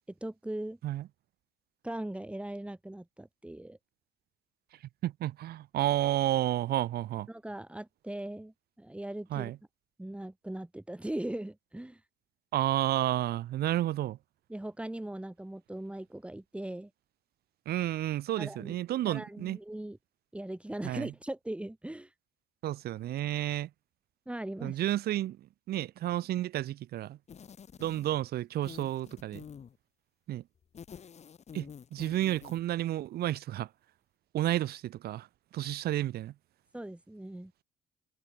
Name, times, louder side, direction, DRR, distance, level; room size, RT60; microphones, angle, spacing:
voice 1, 0.2-0.8 1.8-3.8 7.3-9.5 10.0-12.0 14.5-16.9 18.4-18.8 19.1-20.0 20.3-22.1 24.3-24.8 36.7-37.5, right 1 dB, 5° right, 5.4 m, -39 dB
voice 2, 5.0-7.3 9.3-9.6 12.5-14.2 17.7-19.6 20.8-21.1 22.6-23.7 24.6-25.4 25.7-27.2 27.8-29.4 30.3-30.4 31.5-31.7 31.9-33.7 34.3-35.3 35.5-36.3, right 13 dB, 65° right, 2.3 m, -31 dB
sound 1, 27.3-28.3 28.6-29.8 30.6-32.7, left 7 dB, 40° left, 7.7 m, -48 dB
cardioid pair, 110°, 17 cm